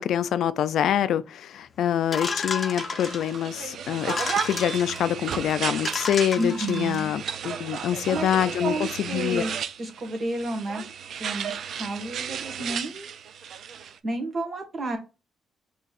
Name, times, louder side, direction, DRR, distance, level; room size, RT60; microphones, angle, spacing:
voice 1, 0.0-9.4, left 10 dB, 70° left, 0.3 m, -25 dB
sound 1, 2.1-3.4 4.0-5.0 5.5-5.6 5.8-7.1, left 4 dB, 35° left, 0.7 m, -32 dB
sound 2, 2.6-14.0, right 7 dB, 65° right, 0.4 m, -34 dB
voice 2, 6.3-7.1 8.1-10.8 11.2-13.1 13.8-15.0, right 2 dB, 45° right, 1.6 m, -31 dB
5.4 x 3.1 x 2.5 m
cardioid pair, 90°, 0 cm